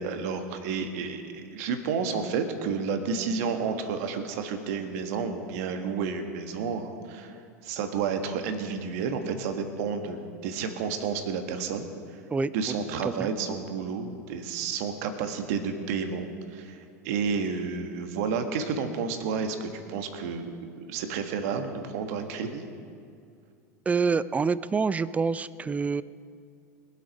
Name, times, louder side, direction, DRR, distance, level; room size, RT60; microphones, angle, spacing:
voice 1, 0.0-12.2 12.5-20.5 20.9-22.6, right 5 dB, 60° right, 6 dB, 1.6 m, -31 dB
voice 2, 23.9-26.0, right 5 dB, 15° right, 17 dB, 0.4 m, -26 dB
22.0 x 8.2 x 5.3 m, 2.3 s
hypercardioid pair, 85°, 9 cm